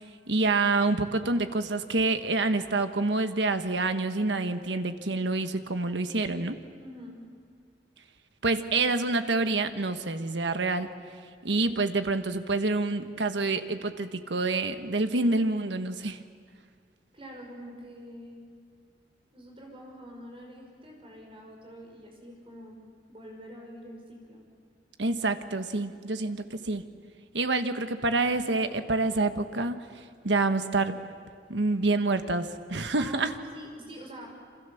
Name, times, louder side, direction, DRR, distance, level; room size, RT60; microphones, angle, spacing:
voice 1, 0.3-6.6 8.4-10.9 11.4-16.2 25.0-26.8 27.3-31.0 31.5-33.3, right 3 dB, 90° right, 8 dB, 1.4 m, -27 dB
voice 2, 6.8-7.2 17.1-18.4 19.3-24.4 33.0-34.3, equal, 30° right, 1 dB, 5.7 m, -45 dB
27.5 x 26.5 x 7.2 m, 2.1 s
head